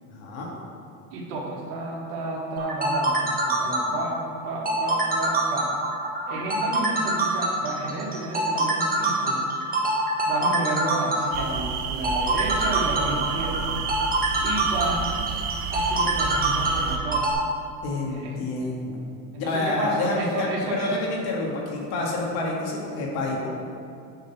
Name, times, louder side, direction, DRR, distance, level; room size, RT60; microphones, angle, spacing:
voice 1, 0.0-0.5 3.6-3.7 17.0-17.1 17.8-19.0 19.3-23.5, left 2 dB, 65° left, -2 dB, 2.1 m, -28 dB
voice 2, 1.1-4.2 4.4-5.7 6.3-9.4 10.3-13.7 14.4-15.1 15.7-17.3 18.1-18.4 19.3-20.9, right 2 dB, 85° right, -2 dB, 1.9 m, -31 dB
sound 1, 2.6-17.3, right 2 dB, 20° right, 1.4 m, -25 dB
sound 2, 11.3-17.0, right 7 dB, 70° right, 0.9 m, -30 dB
8.0 x 4.1 x 7.0 m, 2.4 s
supercardioid pair, 120°, 42 cm